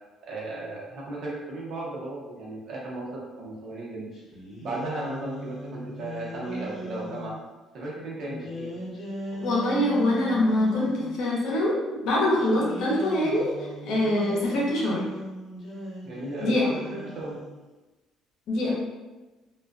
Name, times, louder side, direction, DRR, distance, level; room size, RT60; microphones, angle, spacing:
voice 1, 0.2-4.1 4.6-7.3 7.7-8.8 16.0-17.4, right 2 dB, 60° right, -4 dB, 0.8 m, -35 dB
sound 1, 4.1-7.4 8.3-11.2 12.4-17.6, equal, 50° left, 1.0 m, -39 dB
voice 2, 9.4-15.1 16.4-16.7 18.5-18.7, left 1 dB, 75° left, -4 dB, 0.7 m, -24 dB
2.3 x 2.2 x 2.4 m, 1.2 s
cardioid pair, 100°, 0 cm